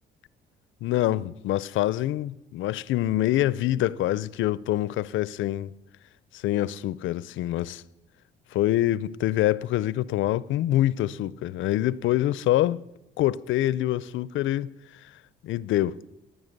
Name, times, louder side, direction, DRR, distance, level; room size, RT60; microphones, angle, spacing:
voice 1, 0.8-5.7 6.3-7.8 8.5-12.8 13.2-15.1 15.4-16.0, left 14 dB, 80° left, 0.5 m, -25 dB
16.5 x 9.4 x 6.6 m
cardioid pair, 90°, 20 cm